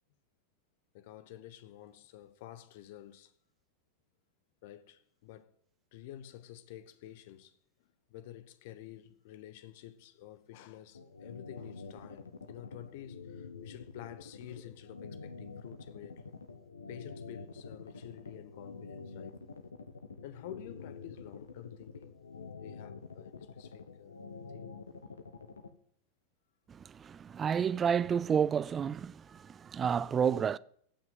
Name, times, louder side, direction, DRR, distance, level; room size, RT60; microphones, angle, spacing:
voice 1, 0.9-3.3 4.6-5.5 5.9-7.6 8.1-16.4 16.9-19.5 20.2-22.2 22.6-24.2 24.5-24.7, left 12 dB, 50° left, 1.2 m, -50 dB
sound 1, 10.9-25.7, left 4 dB, 75° left, 1.3 m, -47 dB
voice 2, 26.7-30.6, right 7 dB, 20° right, 0.5 m, -30 dB
15.5 x 6.1 x 9.2 m
figure-of-eight pair, 90°, 0 cm